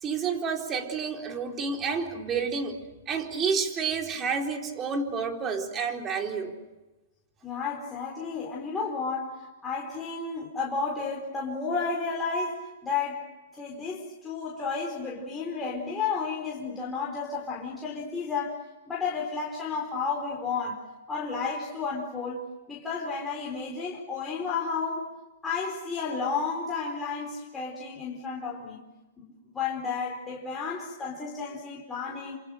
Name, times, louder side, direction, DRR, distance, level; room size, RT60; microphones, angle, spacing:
voice 1, 0.0-2.8 3.1-6.5, right 5 dB, 20° right, 3 dB, 4.1 m, -29 dB
voice 2, 7.4-25.1 25.4-28.8 29.2-32.4, left 5 dB, 10° left, -3 dB, 4.7 m, -32 dB
28.5 x 27.5 x 6.6 m, 1.1 s
hypercardioid pair, 145°, 0 cm